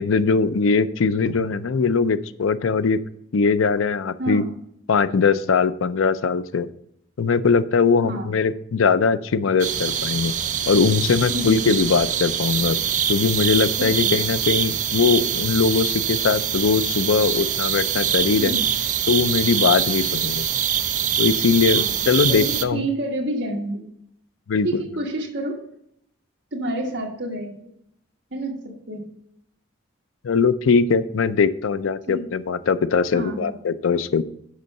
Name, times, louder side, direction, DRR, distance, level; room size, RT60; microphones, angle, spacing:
voice 1, 0.0-3.0 3.3-4.4 4.9-6.7 7.2-10.3 10.7-12.8 13.1-18.5 19.1-20.5 21.2-22.8 24.5-24.8 30.2-34.2, left 5 dB, 90° left, 14 dB, 0.5 m, -20 dB
voice 2, 4.2-4.5 8.0-8.3 11.3-11.7 13.8-14.2 18.3-18.6 21.7-21.9 22.3-23.9 24.6-25.6 26.5-27.7 28.3-29.0 32.1-32.2 33.1-33.5, right 1 dB, 65° right, 1 dB, 1.5 m, -28 dB
sound 1, 9.6-22.6, right 8 dB, 40° right, 0.4 m, -24 dB
6.8 x 5.4 x 6.4 m, 0.74 s
head